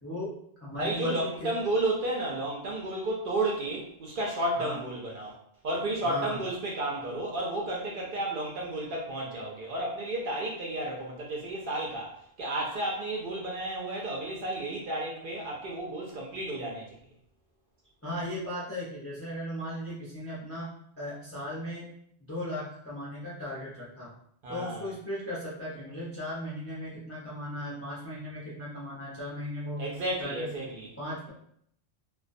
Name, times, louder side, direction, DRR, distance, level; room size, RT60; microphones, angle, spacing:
voice 1, 0.0-0.3 0.6-1.5 4.6-4.8 6.0-6.4 18.0-21.9 22.2-24.1 24.5-29.9 30.2-30.5 31.0-31.3, left 1 dB, 20° left, -7 dB, 0.4 m, -37 dB
voice 2, 0.7-5.3 5.6-12.1 12.4-17.0 24.4-24.9 29.8-30.9, right 1 dB, 60° right, -3 dB, 0.6 m, -32 dB
2.3 x 2.2 x 2.5 m, 0.68 s
omnidirectional pair, 1.2 m